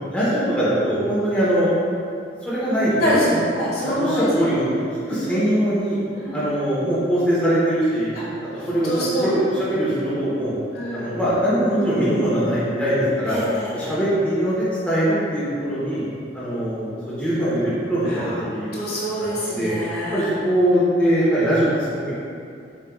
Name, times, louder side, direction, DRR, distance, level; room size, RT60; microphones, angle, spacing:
voice 1, 0.1-1.7 2.4-3.4 3.8-4.8 5.1-6.0 6.3-8.1 8.7-10.5 10.9-13.4 13.7-16.0 16.3-18.1 18.5-18.7 19.4-19.7 20.1-22.1, right 1 dB, 5° left, -10 dB, 0.7 m, -21 dB
voice 2, 3.5-4.5 6.1-6.5 8.1-8.2 8.5-9.3 10.7-11.1 13.3-13.9 18.0-20.2, left 1 dB, 55° left, -8 dB, 1.1 m, -26 dB
6.6 x 2.2 x 2.3 m, 2.4 s
head